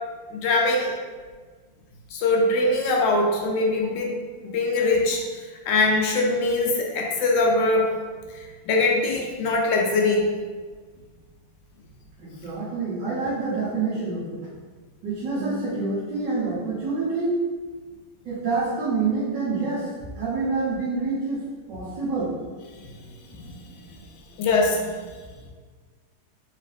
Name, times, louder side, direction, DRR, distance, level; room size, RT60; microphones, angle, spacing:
voice 1, 0.3-0.9 2.1-4.2 4.4-5.2 5.7-7.9 8.3-10.3 23.4-23.5 23.8-24.0 24.4-24.9, left 2 dB, 75° left, 0 dB, 1.2 m, -22 dB
voice 2, 12.2-14.4 15.0-17.4 18.2-19.9 20.2-21.4 21.7-22.3, right 3 dB, 65° right, -7 dB, 1.7 m, -27 dB
4.2 x 2.7 x 3.3 m, 1.5 s
omnidirectional pair, 2.1 m